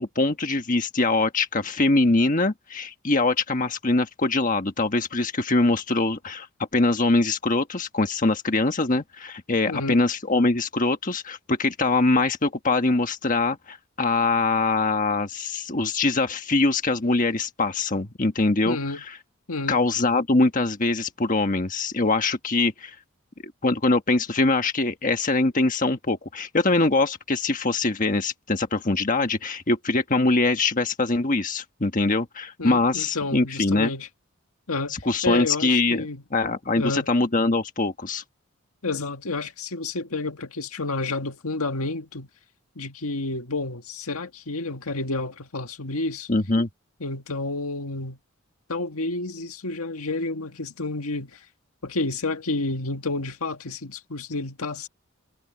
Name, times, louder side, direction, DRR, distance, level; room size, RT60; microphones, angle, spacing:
voice 1, 0.0-6.5 6.7-18.8 19.7-22.9 23.6-33.9 35.0-36.0 36.3-38.2 46.3-46.7, left 3 dB, 35° left, 1.4 m, -23 dB
voice 2, 9.7-10.0 18.7-19.0 19.5-19.8 32.6-34.1 34.7-35.0 35.2-36.2 36.8-37.1 38.8-42.3 42.8-46.3 47.0-48.2 48.7-51.4 51.8-54.9, left 3 dB, 85° left, 1.9 m, -30 dB
head